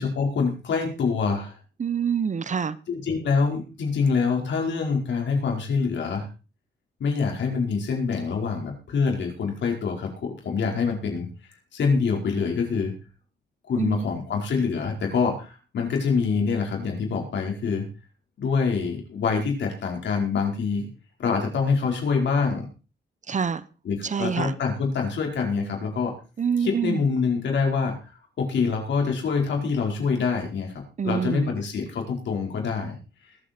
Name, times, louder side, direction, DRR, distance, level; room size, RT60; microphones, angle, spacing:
voice 1, 0.0-1.5 2.9-6.3 7.0-11.3 11.7-12.9 13.7-17.8 18.4-20.9 21.2-22.7 23.8-26.1 26.6-28.0 28.4-33.0, left 5 dB, 85° left, 1 dB, 4.7 m, -25 dB
voice 2, 1.8-2.8 13.8-14.1 23.3-23.6 24.0-24.5 26.4-27.0 31.0-31.5, right 6 dB, 45° right, 17 dB, 0.9 m, -26 dB
20.5 x 8.2 x 4.4 m, 0.33 s
cardioid pair, 100°, 18 cm